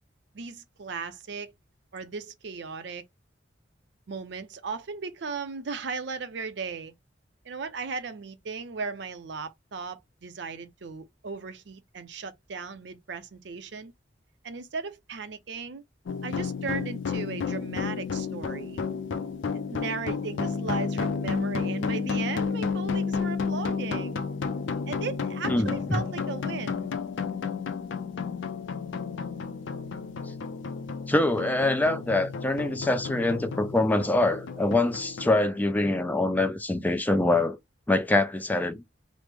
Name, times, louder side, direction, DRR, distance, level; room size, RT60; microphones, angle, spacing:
voice 1, 0.3-1.5 1.9-3.0 4.1-6.9 7.5-13.9 14.4-15.8 16.2-18.8 19.5-24.2 24.9-26.9, right 4 dB, 70° right, 0.5 m, -36 dB
sound 1, 16.1-35.3, left 5 dB, 85° left, 0.4 m, -32 dB
voice 2, 25.5-26.0 31.1-37.6 37.9-38.8, left 2 dB, 10° left, 0.3 m, -24 dB
3.1 x 2.0 x 3.3 m
head